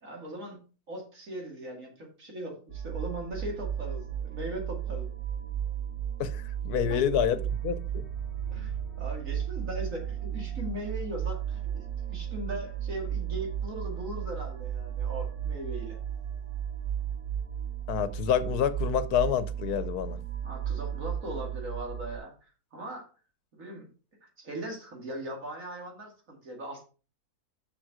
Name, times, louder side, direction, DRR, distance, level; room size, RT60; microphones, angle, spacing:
voice 1, 0.0-0.6 0.9-5.1 6.9-7.0 8.5-16.0 20.4-23.1 23.5-23.9 24.4-26.8, right 1 dB, 55° right, 2.7 m, -39 dB
sound 1, 2.7-22.2, right 9 dB, 70° right, 2.7 m, -34 dB
voice 2, 6.2-8.0 17.9-20.2, left 9 dB, 75° left, 1.2 m, -28 dB
6.3 x 6.2 x 4.7 m
omnidirectional pair, 1.7 m